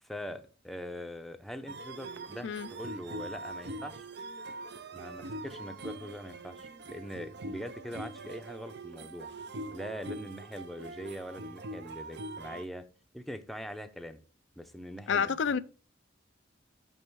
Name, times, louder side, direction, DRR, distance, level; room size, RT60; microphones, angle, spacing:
voice 1, 0.0-4.1 4.9-9.3 9.7-12.8 13.1-14.2 14.6-15.6, equal, ahead, 0.6 m, -42 dB
sound 1, 1.7-12.7, right 2 dB, 65° right, 0.7 m, -43 dB
voice 2, 15.1-15.6, left 6 dB, 75° left, 0.4 m, -28 dB
7.1 x 5.5 x 4.6 m
head